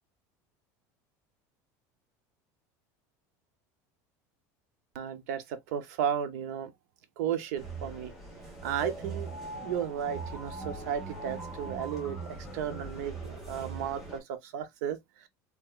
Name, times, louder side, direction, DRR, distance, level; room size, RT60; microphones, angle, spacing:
voice 1, 4.9-6.7 7.2-8.1 8.6-9.3 9.6-15.0, right 9 dB, 80° right, 0.7 m, -34 dB
sound 1, 7.6-14.2, right 3 dB, 5° right, 1.2 m, -41 dB
3.6 x 2.8 x 2.2 m
cardioid pair, 175°, 9 cm